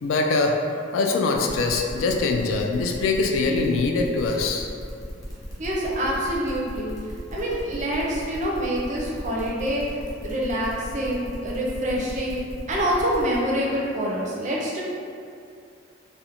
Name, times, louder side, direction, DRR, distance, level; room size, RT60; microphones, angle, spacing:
voice 1, 0.0-0.6 0.9-4.7, left 3 dB, 85° left, 3 dB, 0.3 m, -23 dB
sound 1, 1.3-13.4, equal, 20° left, 0.5 m, -39 dB
voice 2, 5.6-12.4 12.7-14.8, equal, 40° right, -4 dB, 0.4 m, -26 dB
2.4 x 2.1 x 2.8 m, 2.4 s
head